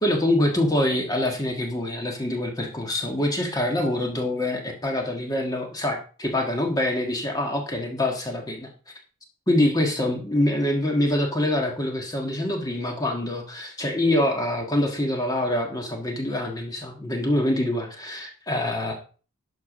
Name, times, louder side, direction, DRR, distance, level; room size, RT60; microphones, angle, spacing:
voice 1, 0.0-8.7 9.5-18.9, left 1 dB, 15° left, 2 dB, 1.5 m, -25 dB
12.0 x 4.7 x 6.2 m, 0.38 s
head